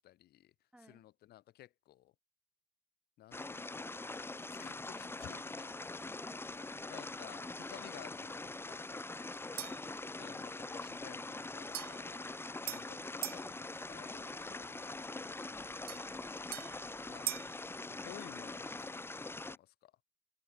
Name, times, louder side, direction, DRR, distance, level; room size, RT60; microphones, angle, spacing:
voice 1, 0.0-0.5 0.8-2.1 3.2-3.9 4.4-5.8 6.9-8.9 10.2-12.4 12.6-15.8 17.1-17.5 17.9-19.1 19.5-19.9, left 14 dB, 70° left, 2.0 m, -55 dB
voice 2, 0.7-1.1 6.0-6.5 9.1-9.9 16.2-16.7, right 1 dB, 5° right, 4.5 m, -60 dB
sound 1, 3.3-19.6, left 2 dB, 15° left, 1.9 m, -43 dB
sound 2, 9.6-9.9 11.7-13.5 15.9-17.6, right 13 dB, 65° right, 1.2 m, -43 dB
open air
cardioid pair, 110°, 17 cm